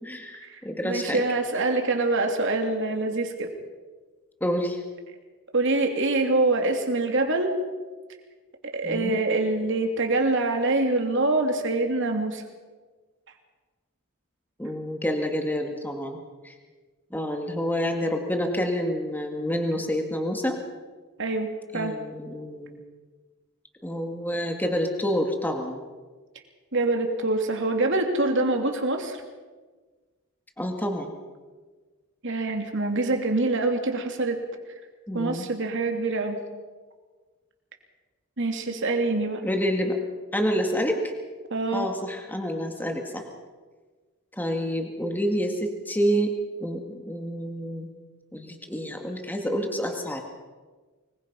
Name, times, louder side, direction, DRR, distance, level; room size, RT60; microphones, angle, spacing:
voice 1, 0.0-1.2 4.4-4.8 8.8-9.2 14.6-16.2 16.4-16.6 17.1-20.6 21.7-22.8 23.8-25.8 30.6-31.1 35.1-35.5 39.4-40.0 40.3-41.1 41.7-43.2 44.4-46.3 46.6-47.9 48.3-50.2, equal, 10° left, 3 dB, 2.0 m, -28 dB
voice 2, 0.8-3.5 5.5-7.6 8.7-12.4 21.2-21.9 26.7-29.2 32.2-34.4 35.1-36.4 38.4-39.5 41.5-41.9, right 2 dB, 60° right, 4 dB, 2.9 m, -25 dB
25.0 x 21.5 x 5.5 m, 1.4 s
head